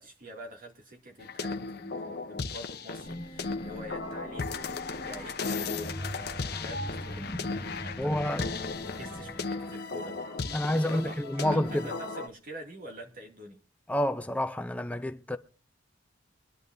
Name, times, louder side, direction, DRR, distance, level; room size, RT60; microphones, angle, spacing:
voice 1, 0.0-8.5 9.0-13.6, equal, 45° right, 2.6 m, -46 dB
sound 1, 1.2-12.3, left 4 dB, 55° left, 0.8 m, -36 dB
sound 2, 3.0-9.5, equal, 30° left, 1.7 m, -41 dB
sound 3, 4.0-12.2, left 2 dB, 10° right, 2.9 m, -51 dB
voice 2, 8.0-8.4 10.5-11.9 13.9-15.4, left 1 dB, 5° left, 0.5 m, -29 dB
23.0 x 11.0 x 2.7 m
head